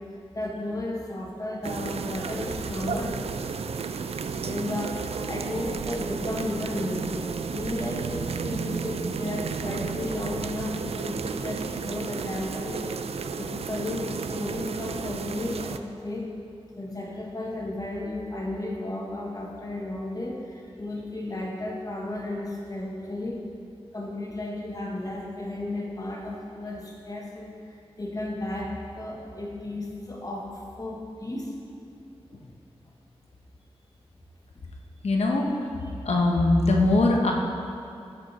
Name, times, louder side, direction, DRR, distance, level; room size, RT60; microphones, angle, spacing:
voice 1, 0.3-3.2 4.4-7.2 7.5-12.8 13.4-16.3 16.7-23.4 23.9-31.5 31.8-32.0 35.8-35.9, left 1 dB, 35° left, -2 dB, 1.6 m, -34 dB
sound 1, 1.6-15.8, right 5 dB, 75° right, 0.4 m, -32 dB
voice 2, 35.0-35.5 36.0-37.3, left 2 dB, 85° left, 0 dB, 1.2 m, -21 dB
14.5 x 5.3 x 4.3 m, 2.6 s
wide cardioid pair, 95°, 11 cm